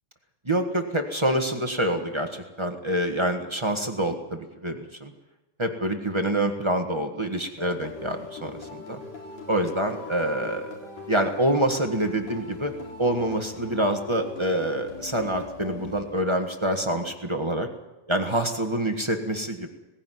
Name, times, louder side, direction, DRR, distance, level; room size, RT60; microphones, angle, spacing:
voice 1, 0.4-5.1 5.6-9.0 9.5-12.7 13.0-17.7 18.1-19.7, right 1 dB, 25° right, 5 dB, 0.6 m, -26 dB
sound 1, 7.6-16.5, left 4 dB, 60° left, 5.0 m, -40 dB
19.0 x 16.0 x 9.4 m, 1.0 s
omnidirectional pair, 3.3 m